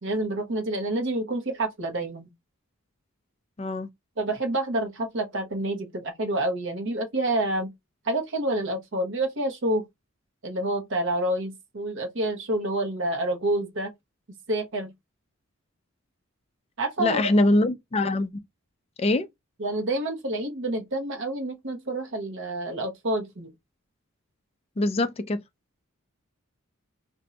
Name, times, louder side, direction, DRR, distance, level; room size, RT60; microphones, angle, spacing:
voice 1, 0.0-2.3 4.2-7.7 8.0-9.8 10.4-13.9 14.5-14.9 16.8-17.5 19.6-23.5, right 1 dB, 55° right, 0.8 m, -28 dB
voice 2, 3.6-3.9 17.0-18.3 19.0-19.3 24.8-25.4, left 2 dB, 30° left, 0.4 m, -23 dB
2.6 x 2.2 x 3.8 m
head